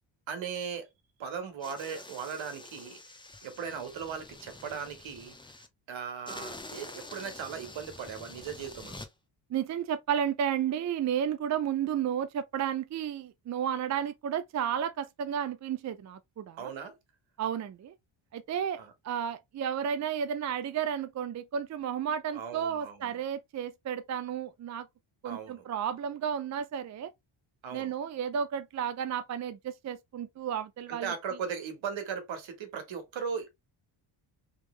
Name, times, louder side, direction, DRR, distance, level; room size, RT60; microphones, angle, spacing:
voice 1, 0.3-0.9 1.2-3.0 3.4-5.3 5.9-9.0 16.6-17.0 18.8-18.9 22.3-23.2 25.2-25.6 27.6-27.9 30.9-33.5, right 6 dB, 65° right, 1.5 m, -38 dB
sound 1, 1.6-5.7 6.3-9.1, left 2 dB, 10° left, 0.7 m, -47 dB
voice 2, 9.5-16.7 17.4-17.9 18.3-18.8 19.0-24.9 25.2-27.1 27.7-31.1, right 8 dB, 35° right, 0.4 m, -32 dB
3.6 x 3.1 x 3.1 m
cardioid pair, 75°, 49 cm